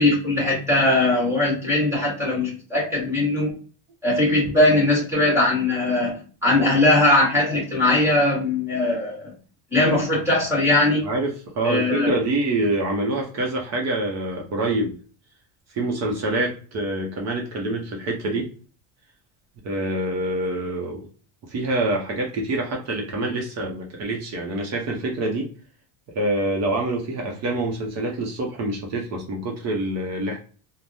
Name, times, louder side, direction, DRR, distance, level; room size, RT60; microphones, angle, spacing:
voice 1, 0.0-3.5 4.0-9.3 9.7-11.0 11.6-12.1, left 2 dB, 5° right, -4 dB, 1.1 m, -20 dB
voice 2, 11.0-15.0 15.7-18.5 19.6-21.1 21.5-25.5 26.1-30.4, right 2 dB, 40° right, 0 dB, 0.6 m, -26 dB
3.3 x 2.1 x 2.6 m, 0.38 s
cardioid pair, 165°, 43 cm